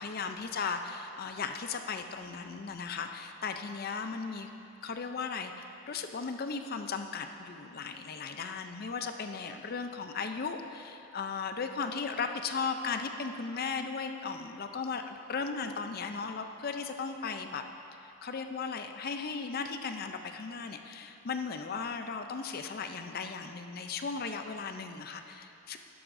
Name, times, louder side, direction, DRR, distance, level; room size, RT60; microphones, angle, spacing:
voice 1, 0.0-4.5 4.8-17.6 18.0-25.8, left 5 dB, 45° left, 7 dB, 0.5 m, -36 dB
12.0 x 11.0 x 2.6 m, 2.8 s
head